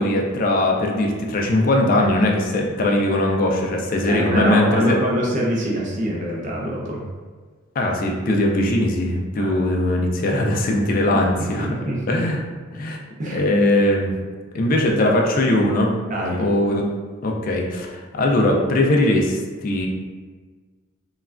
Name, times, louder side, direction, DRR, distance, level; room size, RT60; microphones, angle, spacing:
voice 1, 0.0-5.0 7.8-11.7 12.1-12.4 12.7-13.0 13.3-14.1 14.5-15.9 16.4-16.9 17.2-19.9, left 1 dB, 40° left, 0 dB, 0.3 m, -20 dB
voice 2, 4.1-7.1 9.4-9.5 11.1-12.2 13.2-13.4 16.1-16.4, equal, 40° right, -4 dB, 0.5 m, -25 dB
3.2 x 2.2 x 2.4 m, 1.5 s
head